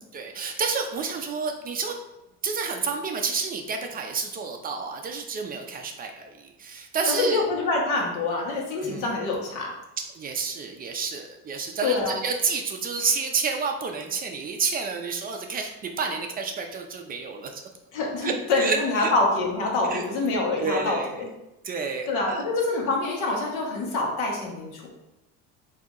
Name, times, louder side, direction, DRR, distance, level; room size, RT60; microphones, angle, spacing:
voice 1, 0.1-1.9 2.4-7.4 8.8-9.1 10.1-17.6 18.2-18.3 18.6-19.1 19.9-20.0 20.6-21.1 21.6-22.4, right 5 dB, 30° right, 3 dB, 0.4 m, -29 dB
voice 2, 7.1-9.7 11.8-12.1 17.9-21.3 22.1-24.9, left 3 dB, 75° left, -1 dB, 1.2 m, -26 dB
4.0 x 2.7 x 3.7 m, 0.94 s
cardioid pair, 140°, 31 cm